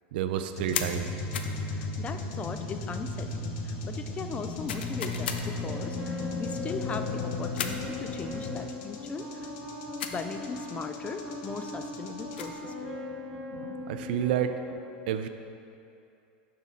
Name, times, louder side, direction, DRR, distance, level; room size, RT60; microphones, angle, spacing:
voice 1, 0.1-1.1 13.5-14.6 15.1-15.3, right 10 dB, 75° right, 8 dB, 0.4 m, -30 dB
sound 1, 0.6-12.5, left 3 dB, 55° left, 0.7 m, -35 dB
sound 2, 0.7-1.0 1.3-1.6 4.7-5.5 7.6-7.9 10.0-10.2 12.1-12.6, left 8 dB, 90° left, 0.4 m, -34 dB
voice 2, 1.7-9.5 10.1-12.9, left 5 dB, 25° left, 8 dB, 0.3 m, -38 dB
sound 3, 5.6-14.7, left 2 dB, ahead, 1.4 m, -39 dB
5.6 x 4.1 x 4.7 m, 2.6 s
supercardioid pair, 120°, 5 cm